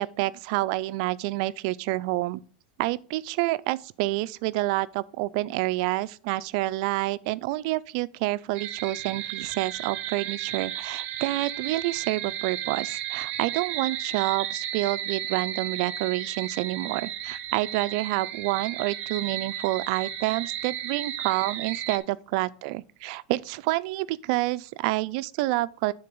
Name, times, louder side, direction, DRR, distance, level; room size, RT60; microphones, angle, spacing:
voice 1, 0.0-2.4 2.8-25.9, right 18 dB, 60° right, 0.4 m, -28 dB
sound 1, 8.6-22.0, right 11 dB, 40° right, 0.8 m, -34 dB
9.7 x 4.0 x 5.3 m
supercardioid pair, 140°, 5 cm